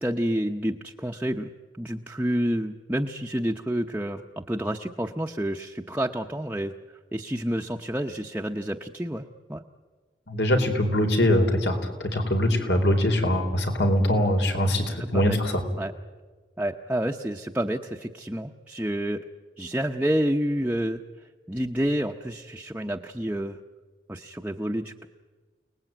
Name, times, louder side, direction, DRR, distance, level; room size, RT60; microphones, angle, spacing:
voice 1, 0.0-1.5 1.8-6.7 7.1-9.6 15.0-15.4 15.8-15.9 16.6-19.2 19.6-21.0 21.5-23.6 24.1-25.1, equal, 10° right, 1 dB, 0.7 m, -29 dB
voice 2, 10.3-15.6, left 1 dB, 90° left, 5 dB, 4.1 m, -23 dB
29.5 x 19.5 x 9.1 m, 1.4 s
head